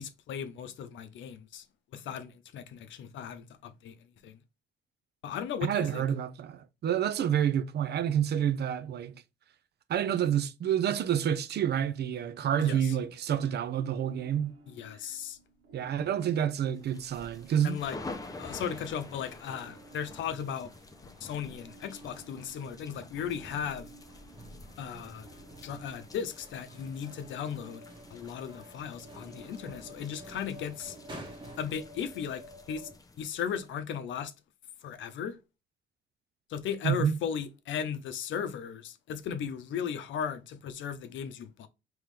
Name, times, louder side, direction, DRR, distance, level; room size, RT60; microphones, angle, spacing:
voice 1, 0.0-1.6 1.9-3.9 4.2-4.4 5.2-6.0 12.6-13.0 14.7-15.4 17.6-18.0 18.4-20.7 21.2-23.9 24.8-25.3 25.6-27.8 28.1-31.0 31.6-32.9 33.2-34.3 34.8-35.4 36.5-41.7, left 8 dB, 75° left, 0.6 m, -36 dB
voice 2, 5.6-9.1 9.9-14.5 15.7-17.8 36.8-37.2, right 9 dB, 55° right, 0.5 m, -28 dB
sound 1, 13.7-32.9, right 1 dB, 80° right, 1.3 m, -54 dB
sound 2, 16.7-33.7, left 3 dB, 20° left, 0.6 m, -49 dB
sound 3, 17.1-31.7, right 1 dB, 25° right, 1.2 m, -53 dB
3.7 x 3.0 x 3.2 m
cardioid pair, 90°, 20 cm